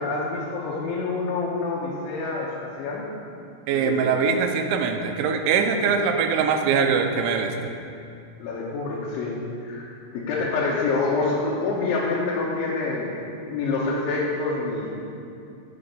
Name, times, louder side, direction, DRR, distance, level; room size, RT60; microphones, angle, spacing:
voice 1, 0.0-3.1 3.7-4.2 5.9-6.0 8.4-13.2 13.5-15.0, left 3 dB, 90° left, -6 dB, 3.5 m, -27 dB
voice 2, 3.7-7.7, right 6 dB, 90° right, 5 dB, 3.1 m, -22 dB
8.6 x 6.9 x 5.4 m, 2.6 s
omnidirectional pair, 5.2 m